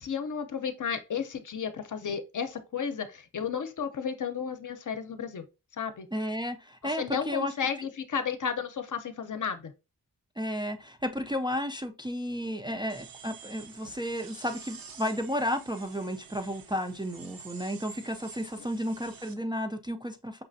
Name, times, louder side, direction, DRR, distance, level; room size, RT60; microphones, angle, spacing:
voice 1, 0.0-5.4 5.8-6.1 6.8-9.7 18.6-18.7, left 7 dB, 55° left, 0.7 m, -33 dB
voice 2, 6.1-7.5 10.4-20.4, equal, 15° right, 0.4 m, -33 dB
sound 1, 12.9-19.3, right 5 dB, 65° right, 0.8 m, -49 dB
5.6 x 3.2 x 2.6 m
wide cardioid pair, 145°, 37 cm